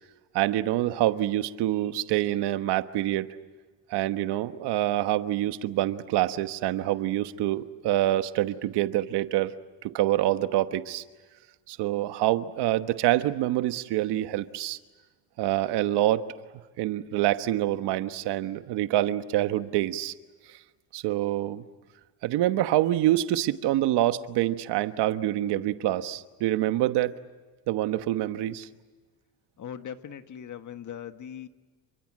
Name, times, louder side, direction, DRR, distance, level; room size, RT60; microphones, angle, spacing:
voice 1, 0.3-3.3 3.9-9.5 9.8-11.0 11.7-14.8 15.4-16.3 16.8-20.1 20.9-21.6 22.2-27.1 27.7-28.7, right 14 dB, 90° right, 11 dB, 1.3 m, -26 dB
voice 2, 29.6-31.5, left 9 dB, 50° left, 10 dB, 1.5 m, -40 dB
28.5 x 23.5 x 7.6 m, 1.3 s
cardioid pair, 120°, 39 cm